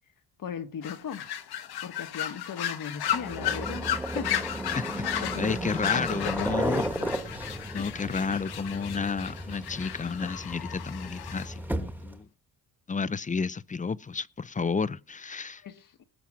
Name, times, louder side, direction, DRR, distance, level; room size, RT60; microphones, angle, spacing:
voice 1, 0.4-1.3 1.8-4.5 4.9-5.6 5.9-7.1 7.5-7.9 15.6-16.0, left 8 dB, 55° left, 1.3 m, -38 dB
sound 1, 0.8-11.5, left 11 dB, 70° left, 1.3 m, -34 dB
sound 2, 3.1-12.2, right 1 dB, 5° right, 1.5 m, -35 dB
voice 2, 4.7-6.8 7.7-12.3 12.9-15.6, left 5 dB, 20° left, 0.5 m, -31 dB
19.0 x 7.1 x 6.1 m
cardioid pair, 80°, 39 cm